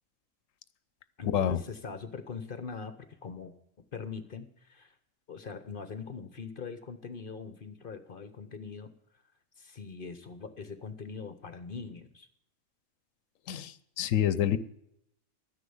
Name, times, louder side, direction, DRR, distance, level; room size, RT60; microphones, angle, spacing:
voice 1, 1.2-4.9 5.3-8.9 9.6-12.3, left 5 dB, 45° left, 10 dB, 1.0 m, -42 dB
voice 2, 13.5-14.6, left 10 dB, 85° left, 15 dB, 1.1 m, -27 dB
12.5 x 9.9 x 7.0 m, 0.75 s
omnidirectional pair, 1.3 m